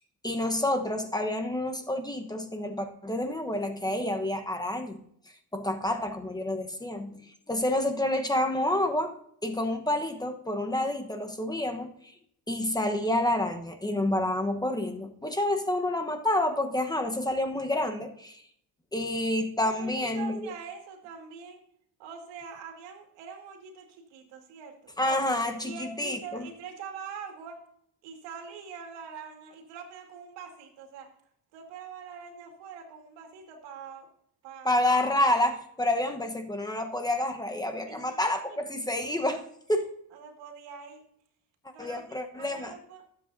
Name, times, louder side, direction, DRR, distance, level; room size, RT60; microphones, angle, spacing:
voice 1, 0.2-5.0 5.5-9.1 9.4-11.9 12.5-18.4 18.9-20.5 25.0-26.5 34.6-39.9 41.8-42.7, left 1 dB, 10° left, 5 dB, 1.1 m, -29 dB
voice 2, 19.6-21.6 22.0-24.9 25.6-27.6 28.0-31.1 31.5-34.1 34.4-34.7 37.9-38.2 38.5-38.6 40.1-41.1 41.7-43.0, right 6 dB, 90° right, 4 dB, 2.1 m, -44 dB
19.5 x 7.8 x 2.7 m, 0.70 s
cardioid pair, 110°, 41 cm